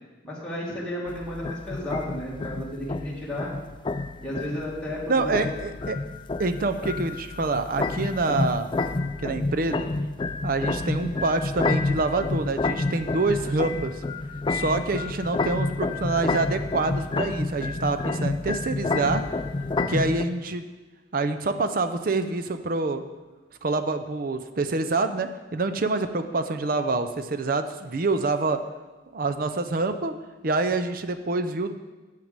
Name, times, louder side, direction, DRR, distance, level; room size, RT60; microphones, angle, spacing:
voice 1, 0.2-3.5 4.2-5.4 19.6-20.1, left 1 dB, 5° left, -7 dB, 2.0 m, -33 dB
sound 1, 1.1-20.2, left 3 dB, 25° left, 0.3 m, -29 dB
voice 2, 5.1-6.0 6.4-8.7 9.2-9.9 10.4-14.0 14.5-19.2 19.9-20.7 21.1-23.0 23.6-28.6 29.1-30.1 30.4-31.7, right 3 dB, 50° right, 8 dB, 0.5 m, -26 dB
7.6 x 6.2 x 6.6 m, 1.2 s
head